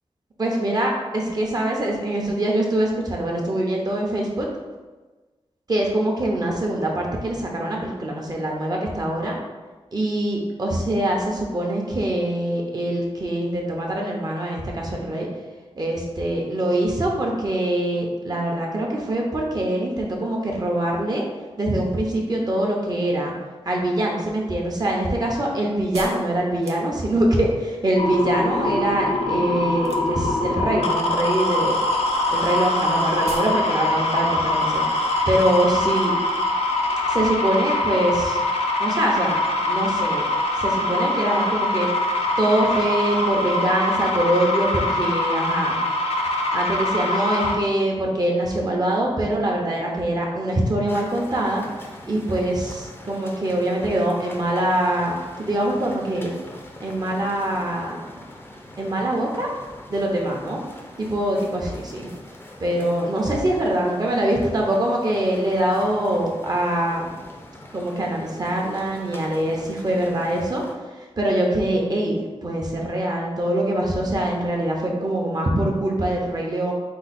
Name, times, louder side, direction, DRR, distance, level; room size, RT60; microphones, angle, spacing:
voice 1, 0.4-4.5 5.7-9.4 9.9-15.3 15.8-21.2 21.6-23.3 23.6-31.7 32.3-36.1 37.1-38.4 38.8-40.2 40.6-42.1 42.4-45.8 46.5-51.6 52.0-56.3 56.8-58.0 58.8-59.5 59.9-60.6 61.0-62.1 62.6-67.1 67.7-70.6 71.0-76.7, right 1 dB, 40° right, -1 dB, 0.8 m, -23 dB
sound 1, 24.3-27.4 29.8-30.4 30.7-31.3 31.6-31.7 32.0-32.1 32.3-32.4 32.7-32.8 33.2-33.6 33.9-34.0, right 3 dB, 85° right, 0.6 m, -39 dB
sound 2, 28.0-47.6, left 2 dB, 75° left, 0.6 m, -23 dB
sound 3, 50.9-70.7, left 1 dB, 20° left, 0.6 m, -43 dB
4.7 x 2.3 x 4.2 m, 1.3 s
wide cardioid pair, 125°, 11 cm